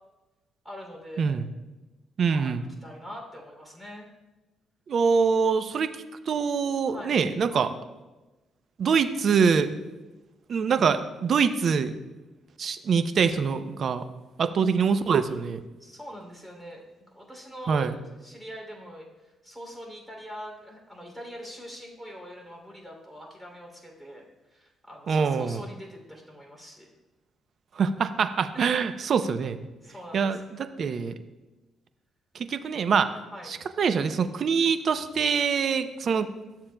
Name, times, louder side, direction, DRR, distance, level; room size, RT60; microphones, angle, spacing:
voice 1, 0.6-1.4 2.2-4.1 6.9-7.2 15.8-16.8 17.1-17.9 18.2-24.2 24.5-26.9 28.5-28.8 29.8-30.5 33.3-33.6, equal, 5° right, -1 dB, 2.8 m, -43 dB
voice 2, 2.2-2.6 4.9-5.9 6.3-7.7 8.8-9.7 10.5-12.0 12.6-14.0 14.4-15.6 17.7-17.9 25.1-25.6 27.8-29.6 30.1-31.1 32.3-33.2 33.5-36.3, right 6 dB, 55° right, 11 dB, 0.5 m, -24 dB
13.0 x 7.2 x 2.2 m, 1.1 s
cardioid pair, 90°, 0 cm